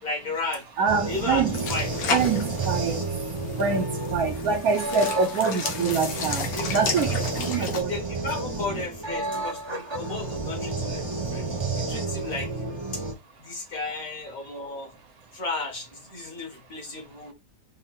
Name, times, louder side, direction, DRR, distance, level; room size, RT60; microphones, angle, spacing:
voice 1, 0.0-0.7 1.1-2.2 5.2-5.4 6.5-6.7 7.1-11.5 11.8-12.6 12.9-13.0 13.4-14.9 15.3-17.3, left 3 dB, 55° left, 2.1 m, -34 dB
voice 2, 0.8-1.6 2.1-3.0 3.6-6.5 6.7-7.1 7.4-7.9, right 5 dB, 65° right, 1.1 m, -25 dB
sound 1, 0.9-13.1, right 3 dB, 20° right, 0.8 m, -31 dB
sound 2, 1.5-7.8, left 5 dB, 90° left, 1.6 m, -33 dB
5.3 x 2.3 x 4.2 m
omnidirectional pair, 1.8 m